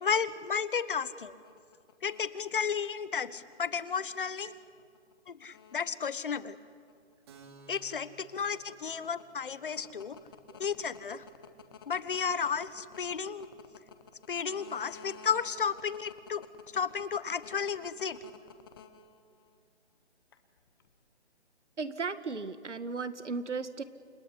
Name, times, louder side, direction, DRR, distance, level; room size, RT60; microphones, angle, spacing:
voice 1, 0.0-1.3 2.0-4.5 5.3-6.6 7.7-10.2 10.6-11.2 11.9-13.5 14.3-16.5 16.7-18.2, left 6 dB, 50° left, 15 dB, 1.2 m, -33 dB
sound 1, 1.2-19.6 20.3-20.9, left 6 dB, 20° left, 1.1 m, -52 dB
Keyboard (musical), 7.3-14.6, right 3 dB, 20° right, 2.3 m, -61 dB
voice 2, 21.8-23.8, right 4 dB, 85° right, 11 dB, 2.0 m, -36 dB
29.0 x 19.5 x 9.8 m, 2.1 s
hypercardioid pair, 165°, 34 cm